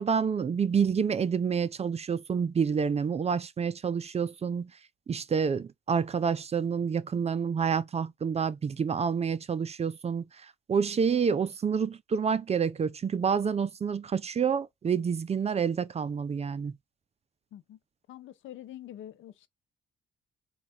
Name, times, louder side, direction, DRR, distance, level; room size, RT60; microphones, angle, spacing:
voice 1, 0.0-4.7 5.1-16.8, right 6 dB, 30° right, 0.5 m, -28 dB
voice 2, 18.1-19.5, left 12 dB, 75° left, 0.6 m, -45 dB
4.3 x 2.3 x 4.2 m
cardioid pair, 90°, 20 cm